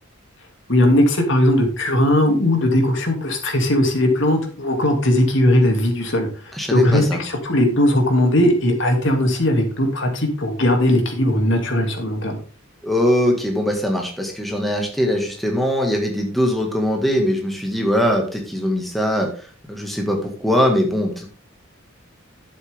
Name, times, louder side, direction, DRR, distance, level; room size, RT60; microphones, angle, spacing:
voice 1, 0.7-12.4, left 1 dB, 60° left, 3 dB, 2.6 m, -18 dB
voice 2, 6.5-7.2 12.8-21.3, equal, ahead, 1 dB, 1.8 m, -21 dB
11.5 x 8.3 x 3.6 m, 0.39 s
head